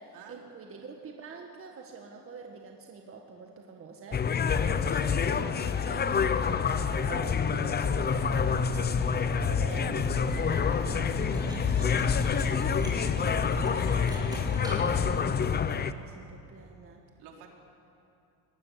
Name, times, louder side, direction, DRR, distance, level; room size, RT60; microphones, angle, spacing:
voice 1, 0.0-4.3 4.6-12.7 13.2-14.4 15.3-17.0, right 4 dB, 35° right, 2 dB, 1.8 m, -46 dB
sound 1, 4.1-15.9, left 6 dB, 25° left, 0.7 m, -27 dB
sound 2, 5.0-13.4, left 6 dB, 85° left, 2.5 m, -50 dB
Cutlery silverware, 7.7-15.5, left 2 dB, 10° right, 6.1 m, -36 dB
voice 2, 12.8-14.3 17.2-17.5, right 6 dB, 70° right, 0 dB, 4.1 m, -51 dB
23.0 x 20.0 x 8.2 m, 2.6 s
cardioid pair, 125°, 40 cm